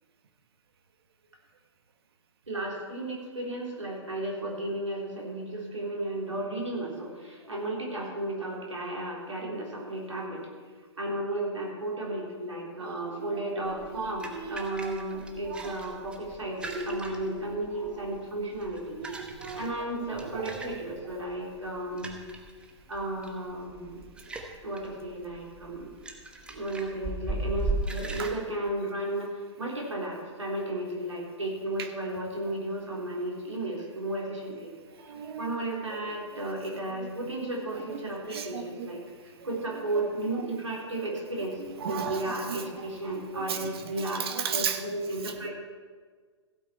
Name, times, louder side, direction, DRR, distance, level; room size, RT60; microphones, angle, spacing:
voice 1, 2.5-10.5 11.0-19.0 19.5-22.2 22.9-24.0 24.6-25.9 26.5-34.7 35.4-41.6 41.9-45.5, right 1 dB, 80° right, -2 dB, 3.7 m, -34 dB
voice 2, 12.8-13.3 13.7-14.9 15.5-15.7 18.9-19.7 20.3-20.5 28.2-28.3 35.0-35.5 36.3-36.5 37.0-37.1 38.3-38.9 39.4-39.6 41.8-42.6 43.3-44.8 45.2-45.5, right 7 dB, 55° right, 6 dB, 1.3 m, -36 dB
sound 1, 13.6-28.3, right 2 dB, 5° right, 1.1 m, -39 dB
15.5 x 8.5 x 4.4 m, 1.5 s
figure-of-eight pair, 120°, 16 cm